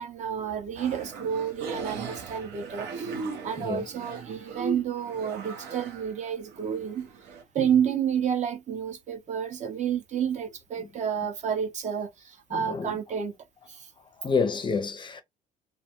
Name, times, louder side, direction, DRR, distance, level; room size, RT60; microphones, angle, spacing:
voice 1, 0.0-3.1 3.4-7.1 7.5-13.4 13.7-13.9, right 8 dB, 45° right, 0.5 m, -30 dB
sound 1, 0.8-7.4, right 4 dB, 85° right, 0.7 m, -38 dB
voice 2, 3.6-3.9 7.6-7.8 10.8-10.9 12.5-13.0 14.0-15.2, left 5 dB, 30° left, 0.4 m, -30 dB
2.4 x 2.1 x 2.8 m
cardioid pair, 110°, 17 cm